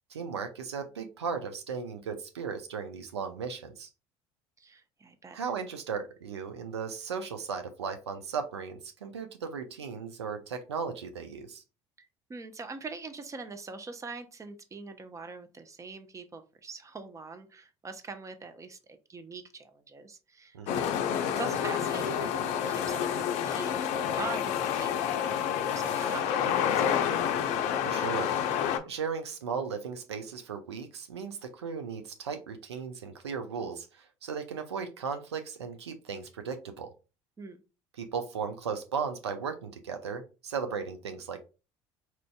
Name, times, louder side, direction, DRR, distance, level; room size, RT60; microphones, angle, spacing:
voice 1, 0.1-3.9 5.3-11.6 20.5-20.9 27.8-28.3 28.9-36.9 38.0-41.5, right 6 dB, 90° right, 7 dB, 0.4 m, -36 dB
voice 2, 4.6-5.4 12.0-20.6 21.3-27.1 37.4-37.6, right 4 dB, 25° right, 8 dB, 0.6 m, -43 dB
sound 1, 20.7-28.8, left 9 dB, 60° left, 0.5 m, -29 dB
4.3 x 2.5 x 2.3 m, 0.31 s
hypercardioid pair, 65°, 14 cm